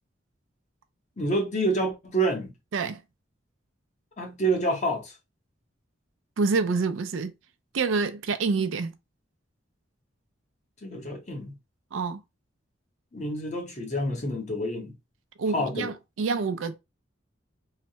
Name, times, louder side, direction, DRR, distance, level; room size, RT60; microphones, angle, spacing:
voice 1, 1.2-2.5 4.2-5.1 10.8-11.5 13.1-14.9 15.5-15.9, right 1 dB, 35° left, 0.9 m, -28 dB
voice 2, 6.4-7.3 7.7-8.9 11.9-12.2 15.4-16.8, right 4 dB, 80° right, 0.4 m, -27 dB
3.2 x 2.1 x 2.8 m
head